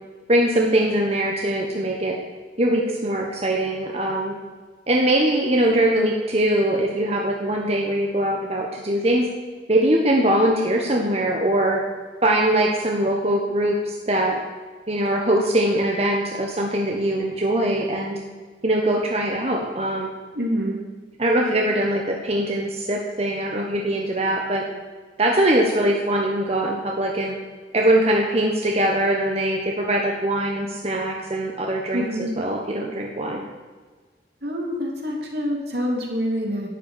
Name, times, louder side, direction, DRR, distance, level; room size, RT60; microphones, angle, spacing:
voice 1, 0.3-2.2 2.6-4.3 4.9-9.2 9.7-11.8 12.2-14.4 14.9-18.2 18.6-20.1 21.2-24.6 25.2-27.3 27.7-32.1 32.4-33.4, right 1 dB, 35° right, 0 dB, 1.4 m, -22 dB
voice 2, 20.3-20.8 31.9-32.4 34.4-36.7, equal, 60° right, -1 dB, 3.2 m, -26 dB
12.0 x 8.2 x 9.2 m, 1.4 s
head